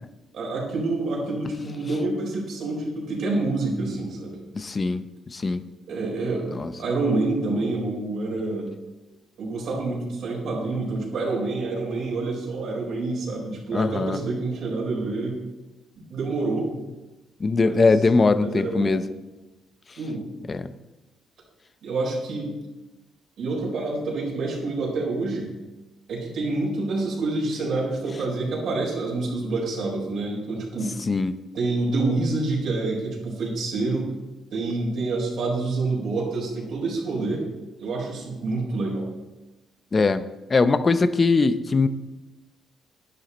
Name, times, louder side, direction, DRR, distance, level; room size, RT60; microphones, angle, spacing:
voice 1, 0.3-4.4 5.9-8.7 9.4-15.4 16.0-16.7 17.6-17.9 18.4-19.0 20.0-20.2 21.8-22.5 23.4-25.5 26.1-31.0 31.5-34.1 34.5-37.5 37.8-39.1, right 3 dB, 70° right, -3 dB, 4.5 m, -27 dB
voice 2, 4.5-5.6 6.5-6.7 13.7-14.2 17.4-19.0 20.5-20.7 31.1-31.4 39.9-40.2 40.5-41.9, left 3 dB, 30° left, 12 dB, 0.7 m, -21 dB
11.0 x 10.0 x 4.2 m, 1.1 s
cardioid pair, 90°, 0 cm